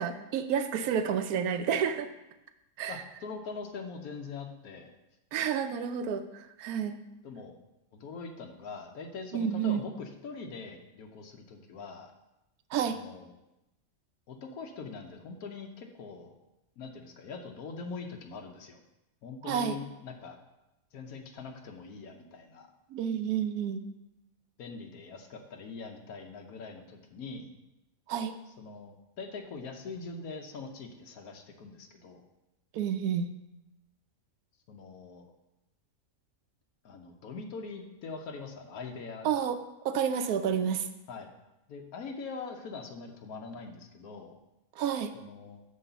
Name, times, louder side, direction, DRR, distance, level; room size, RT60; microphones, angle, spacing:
voice 1, 0.0-2.1 2.8-3.0 5.3-7.0 9.3-9.8 12.7-13.0 19.4-19.8 22.9-23.8 28.1-28.3 32.7-33.3 39.2-39.6 39.8-40.9 44.8-45.1, right 8 dB, 90° right, 9 dB, 1.1 m, -30 dB
voice 2, 2.9-5.0 7.2-7.6 7.9-12.1 12.9-13.3 14.3-16.3 16.8-18.8 19.2-20.4 20.9-22.7 24.6-27.5 28.5-32.2 34.7-35.3 36.8-39.3 41.1-41.3 41.7-44.3 45.1-45.6, left 4 dB, 85° left, 3 dB, 1.3 m, -43 dB
9.5 x 3.2 x 6.8 m, 0.93 s
omnidirectional pair, 1.5 m